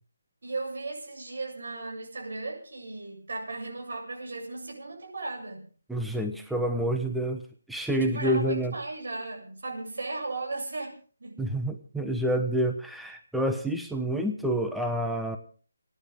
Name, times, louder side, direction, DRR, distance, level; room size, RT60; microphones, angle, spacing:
voice 1, 0.4-5.7 7.9-11.4, right 3 dB, 60° right, 0 dB, 7.7 m, -36 dB
voice 2, 5.9-7.4 7.7-8.7 11.4-15.4, right 1 dB, ahead, 5 dB, 1.1 m, -28 dB
30.0 x 10.5 x 3.7 m, 0.41 s
figure-of-eight pair, 170°, 0 cm